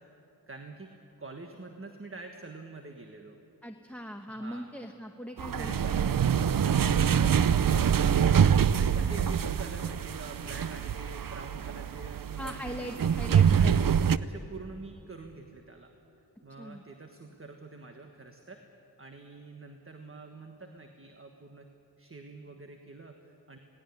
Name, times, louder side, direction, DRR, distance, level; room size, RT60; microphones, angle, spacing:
voice 1, 0.5-0.9 1.2-3.4 4.4-4.7 5.5-7.9 8.3-13.0 13.4-13.8 14.2-15.9 16.4-18.6 19.0-21.7 22.0-23.6, right 3 dB, 35° right, 4 dB, 1.5 m, -45 dB
voice 2, 3.6-5.8 12.4-13.9 16.6-16.8, equal, 5° left, 3 dB, 1.1 m, -40 dB
sound 1, 5.4-14.2, right 8 dB, 60° right, 0.6 m, -25 dB
18.0 x 17.5 x 9.8 m, 2.9 s
wide cardioid pair, 65°, 38 cm